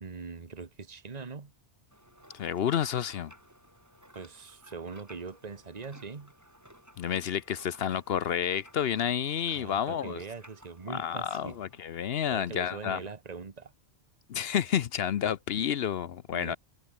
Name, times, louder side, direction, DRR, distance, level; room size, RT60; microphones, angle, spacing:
voice 1, 0.0-1.5 4.1-6.3 9.5-11.6 12.3-13.7 16.3-16.6, right 4 dB, 35° right, 1.5 m, -42 dB
sound 1, 1.9-11.8, equal, 15° right, 6.0 m, -57 dB
voice 2, 2.3-3.3 7.0-10.2 10.9-13.0 14.3-16.6, left 9 dB, 65° left, 0.9 m, -30 dB
omnidirectional pair, 1.1 m